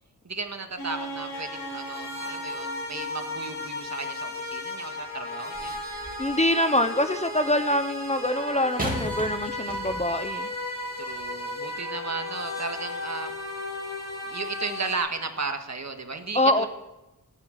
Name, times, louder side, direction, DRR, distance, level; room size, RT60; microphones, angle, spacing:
voice 1, 0.2-5.8 11.0-13.3 14.2-16.7, right 4 dB, 50° right, 6 dB, 1.7 m, -34 dB
sound 1, 0.8-15.0, left 1 dB, 45° left, 4.6 m, -35 dB
sound 2, 5.5-6.4 8.8-10.3 11.1-11.2, right 1 dB, 25° right, 3.0 m, -35 dB
voice 2, 6.2-10.5 16.3-16.7, left 1 dB, 20° left, 10 dB, 0.8 m, -24 dB
14.5 x 10.0 x 9.1 m, 0.98 s
wide cardioid pair, 100°, 35 cm